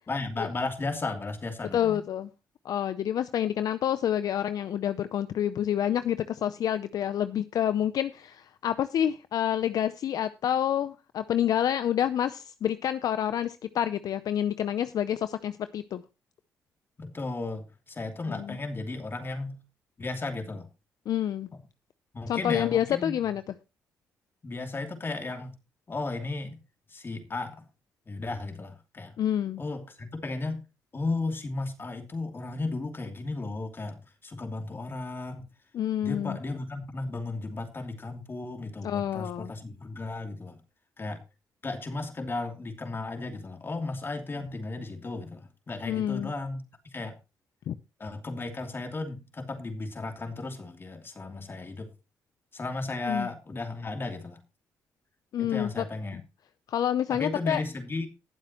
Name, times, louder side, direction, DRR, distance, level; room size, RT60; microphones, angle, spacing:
voice 1, 0.1-2.0 17.0-19.6 20.0-20.7 21.5-21.6 22.1-23.1 24.4-25.5 25.9-26.6 26.9-27.6 28.1-29.1 29.6-30.7 30.9-35.5 36.0-40.6 41.0-41.2 41.6-47.2 48.0-51.9 52.5-54.4 55.4-56.2 57.1-58.1, left 3 dB, 35° left, 5 dB, 2.8 m, -35 dB
voice 2, 1.7-2.3 2.6-16.0 18.3-18.6 21.1-21.5 22.3-23.4 29.2-29.6 35.7-36.4 38.8-39.5 45.9-46.3 47.7-47.8 53.0-53.3 55.3-55.8 56.7-57.6, left 10 dB, 65° left, 13 dB, 0.6 m, -28 dB
19.5 x 7.5 x 3.0 m, 0.28 s
cardioid pair, 70°, 7 cm